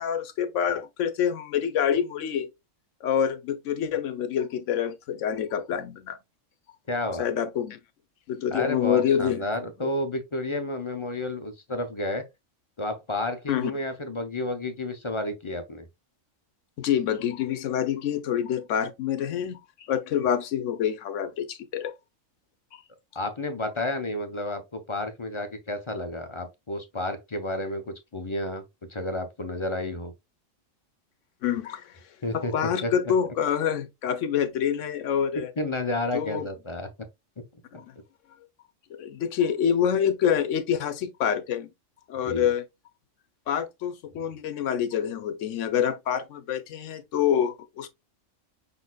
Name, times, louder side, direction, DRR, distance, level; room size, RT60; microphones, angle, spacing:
voice 1, 0.0-2.5 3.0-6.2 7.2-7.8 8.3-9.4 9.8-9.9 13.5-13.7 16.8-21.9 22.7-22.8 31.4-32.0 32.3-35.5 36.1-36.5 37.7-37.9 38.9-41.7 42.1-42.6 43.5-47.9, left 8 dB, 70° left, 1.0 m, -27 dB
voice 2, 6.9-7.3 8.5-12.2 12.8-15.8 23.1-28.6 28.9-30.1 32.2-32.9 35.6-36.9 37.7-37.8 42.2-42.5, left 1 dB, 35° left, 0.5 m, -31 dB
5.7 x 4.1 x 2.2 m
omnidirectional pair, 1.3 m